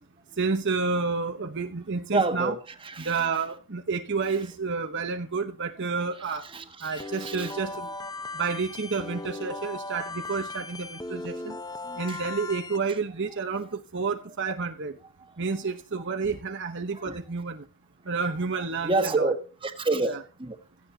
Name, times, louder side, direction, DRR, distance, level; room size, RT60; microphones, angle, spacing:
voice 1, 0.4-2.5 3.0-6.5 6.8-7.9 8.3-11.6 12.0-15.0 15.4-17.6 18.1-19.3 20.1-20.2, right 4 dB, 55° right, 1.0 m, -30 dB
voice 2, 2.1-3.3 6.3-7.6 11.8-12.2 12.9-13.0 13.3-13.6 14.5-14.6 15.2-15.6 16.9-17.2 18.8-19.3 19.6-20.6, right 3 dB, 25° right, 1.5 m, -30 dB
sound 1, 6.9-12.8, left 2 dB, 15° left, 0.9 m, -37 dB
17.0 x 14.5 x 2.8 m
head